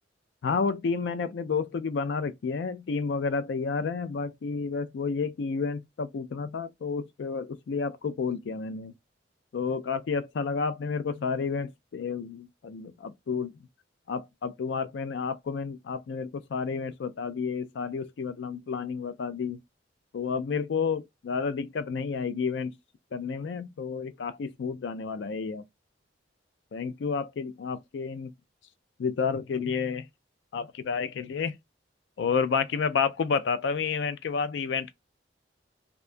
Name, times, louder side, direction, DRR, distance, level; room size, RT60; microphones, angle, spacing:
voice 1, 0.4-8.9 9.5-13.6 14.1-19.6 20.1-22.7 23.1-25.6 26.7-28.3 29.0-30.1 30.5-31.6 32.2-34.9, left 5 dB, 70° left, 0.4 m, -30 dB
2.6 x 2.2 x 2.5 m
head